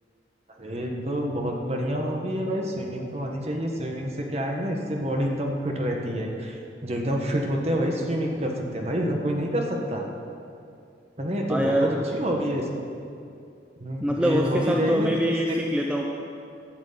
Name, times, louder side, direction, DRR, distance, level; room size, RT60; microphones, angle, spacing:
voice 1, 0.6-10.1 11.2-12.7 13.8-15.1 15.5-15.6, equal, 35° right, 1 dB, 1.3 m, -28 dB
voice 2, 11.5-11.9 14.0-16.1, equal, 5° right, -1 dB, 0.6 m, -24 dB
12.0 x 6.2 x 8.6 m, 2.5 s
head